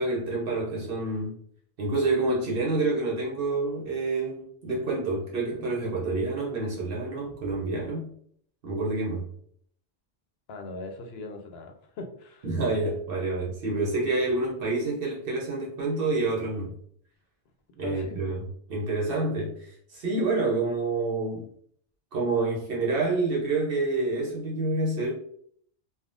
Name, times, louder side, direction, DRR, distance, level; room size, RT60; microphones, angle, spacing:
voice 1, 0.0-1.4 1.8-8.1 8.6-9.3 12.4-16.8 17.8-21.4 22.1-25.1, right 3 dB, 65° right, -3 dB, 0.9 m, -28 dB
voice 2, 10.5-12.5 17.8-18.2, left 3 dB, 75° left, 4 dB, 0.9 m, -40 dB
3.5 x 2.1 x 2.4 m, 0.63 s
omnidirectional pair, 1.1 m